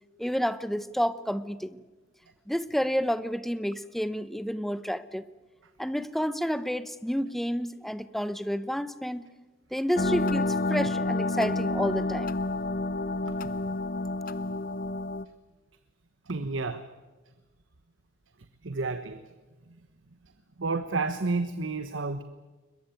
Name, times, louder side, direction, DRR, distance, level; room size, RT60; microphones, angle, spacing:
voice 1, 0.2-1.8 2.5-5.3 5.8-9.3 9.7-12.3, equal, ahead, 14 dB, 0.7 m, -30 dB
sound 1, 10.0-15.2, left 2 dB, 45° left, 0.7 m, -29 dB
voice 2, 16.2-16.8 18.6-19.2 19.7-19.8 20.2-20.3 20.6-22.2, right 3 dB, 85° right, 11 dB, 1.1 m, -31 dB
22.0 x 22.0 x 9.1 m, 1.3 s
head